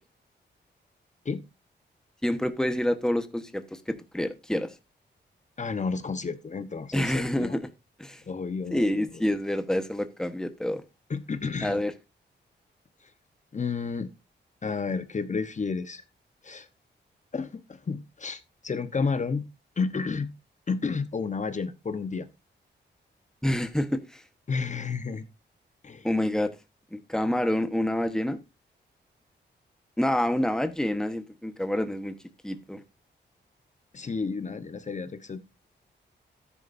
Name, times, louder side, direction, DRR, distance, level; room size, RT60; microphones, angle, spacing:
voice 1, 2.2-4.7 6.9-7.7 8.0-8.2 8.7-10.8 11.6-11.9 23.4-24.2 26.0-26.5 26.9-28.4 30.0-32.2 32.4-32.8, left 1 dB, 5° left, 1.2 m, -27 dB
voice 2, 5.6-7.6 8.3-9.2 11.1-11.8 13.5-14.1 14.6-16.0 16.4-16.7 17.3-19.4 19.8-20.3 20.7-22.3 24.5-25.2 25.8-26.1 33.9-35.4, left 4 dB, 40° left, 1.1 m, -31 dB
13.5 x 10.0 x 2.7 m
cardioid pair, 85°, 19 cm